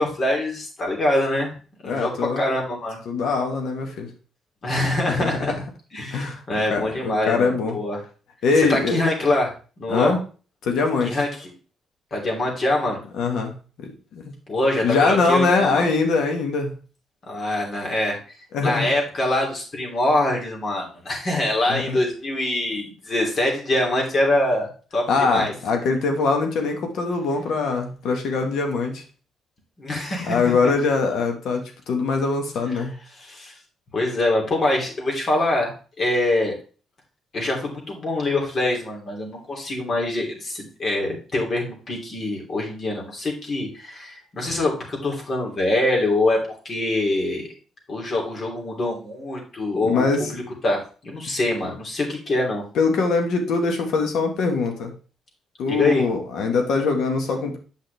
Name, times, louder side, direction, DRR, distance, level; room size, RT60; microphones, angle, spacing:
voice 1, 0.0-1.5 1.8-3.0 4.6-5.6 5.9-8.0 8.6-9.5 9.8-10.1 11.0-11.5 12.1-13.0 14.5-15.8 17.3-18.2 18.6-25.5 29.8-30.5 32.7-32.8 33.2-33.5 33.9-35.7 36.0-36.5 37.3-47.5 47.9-50.0 50.3-52.6 55.7-56.0, left 1 dB, 45° left, -1 dB, 3.1 m, -24 dB
voice 2, 1.8-2.5 3.1-4.1 5.1-5.5 6.1-6.4 6.7-7.8 8.4-9.0 9.9-10.2 10.6-11.2 13.1-14.3 14.8-16.7 18.5-18.9 21.7-22.0 25.1-29.0 30.3-32.9 49.8-50.3 52.8-54.9 55.6-57.6, left 4 dB, 75° left, 4 dB, 1.8 m, -22 dB
8.6 x 5.6 x 3.5 m, 0.36 s
cardioid pair, 90°, 0 cm